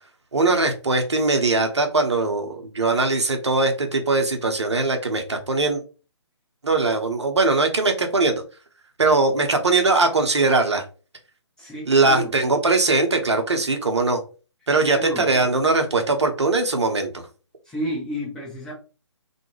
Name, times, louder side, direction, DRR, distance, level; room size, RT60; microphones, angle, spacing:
voice 1, 0.3-5.8 6.6-8.4 9.0-10.8 11.9-14.2 14.7-17.2, right 3 dB, 70° right, 4 dB, 0.7 m, -21 dB
voice 2, 11.6-12.4 14.9-15.6 17.6-18.7, equal, 5° left, -5 dB, 0.5 m, -31 dB
2.3 x 2.1 x 3.1 m, 0.35 s
figure-of-eight pair, 135°, 15 cm